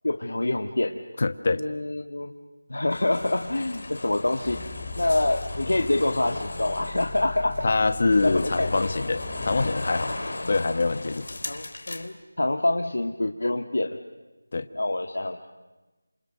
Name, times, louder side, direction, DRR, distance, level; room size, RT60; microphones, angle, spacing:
voice 1, 0.0-1.0 1.6-2.3 2.7-4.6 5.0-7.7 8.0-8.9 11.5-14.0 14.7-15.5, left 2 dB, 80° left, 4 dB, 1.9 m, -26 dB
voice 2, 1.2-1.6 7.6-10.1 10.5-11.3 14.5-14.7, left 3 dB, 45° left, 11 dB, 1.2 m, -24 dB
sound 1, 2.9-12.1, left 2 dB, 65° left, 3.0 m, -36 dB
sound 2, 4.5-9.7, left 3 dB, 20° left, 1.6 m, -38 dB
30.0 x 28.0 x 6.7 m, 1.1 s
figure-of-eight pair, 175°, 0 cm